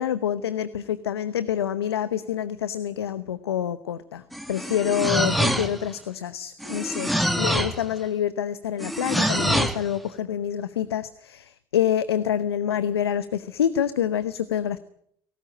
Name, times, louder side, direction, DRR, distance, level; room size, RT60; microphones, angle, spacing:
voice 1, 0.0-4.2 4.5-14.8, left 9 dB, 90° left, 15 dB, 0.9 m, -27 dB
sound 1, 4.3-5.9 6.6-7.8 8.8-9.9, equal, ahead, 2.0 m, -25 dB
19.5 x 18.0 x 8.8 m, 0.68 s
hypercardioid pair, 70°, 13 cm